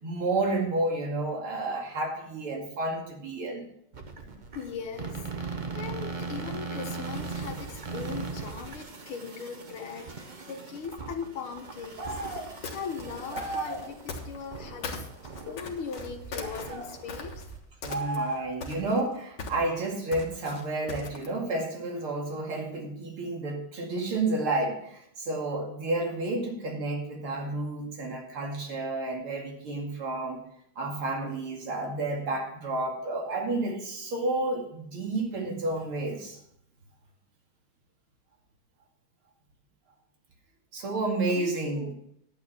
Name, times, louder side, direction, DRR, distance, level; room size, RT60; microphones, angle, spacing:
voice 1, 0.0-3.6 17.8-30.4 30.8-36.4 40.7-41.9, right 2 dB, 85° right, 1 dB, 3.2 m, -31 dB
sound 1, 3.9-17.6, right 4 dB, 40° right, 0.7 m, -39 dB
voice 2, 4.5-12.2 12.5-15.1 15.4-17.4 41.3-41.9, left 6 dB, 85° left, 5 dB, 2.2 m, -39 dB
sound 2, 12.0-12.5 13.3-13.9 16.4-16.9 17.9-18.7, right 2 dB, 55° right, 2.7 m, -34 dB
sound 3, 12.1-14.6 14.8-17.5 17.8-18.3 18.6-21.4, left 3 dB, 55° left, 2.0 m, -39 dB
10.5 x 8.9 x 5.7 m, 0.71 s
omnidirectional pair, 2.3 m